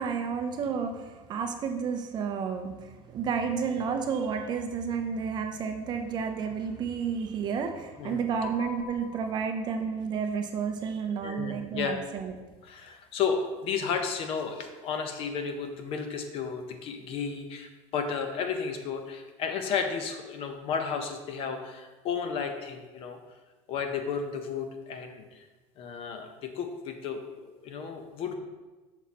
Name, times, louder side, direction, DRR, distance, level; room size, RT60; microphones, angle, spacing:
voice 1, 0.0-12.3, right 6 dB, 30° right, 5 dB, 0.5 m, -31 dB
voice 2, 8.0-9.0 11.2-12.0 12.6-23.2 23.7-25.5 25.8-28.3, left 6 dB, 45° left, 6 dB, 0.6 m, -33 dB
6.1 x 4.1 x 4.2 m, 1.2 s
cardioid pair, 160°, 14 cm